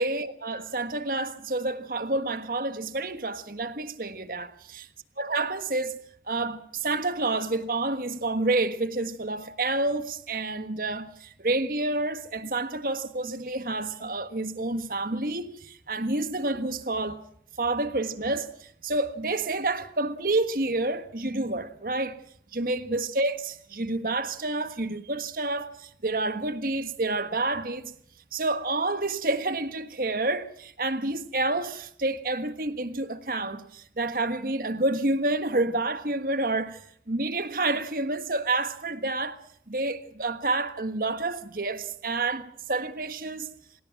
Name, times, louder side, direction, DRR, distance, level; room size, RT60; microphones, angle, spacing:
voice 1, 0.0-4.9 5.2-6.0 6.3-17.2 17.6-22.2 22.5-27.9 28.3-36.8 37.1-39.4 39.7-43.5, right 2 dB, 50° right, 1.5 m, -29 dB
26.5 x 17.0 x 6.0 m
head